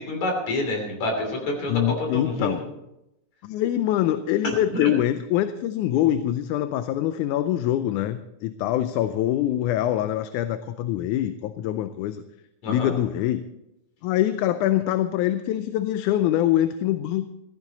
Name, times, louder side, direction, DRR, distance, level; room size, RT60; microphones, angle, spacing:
voice 1, 0.0-2.6 4.4-4.5 4.8-4.9 12.6-12.9, left 2 dB, 65° left, 2 dB, 4.4 m, -27 dB
voice 2, 1.7-2.6 3.4-12.2 12.7-13.5 14.0-17.3, left 12 dB, 85° left, 11 dB, 2.1 m, -24 dB
15.0 x 14.0 x 4.1 m, 0.89 s
omnidirectional pair, 3.5 m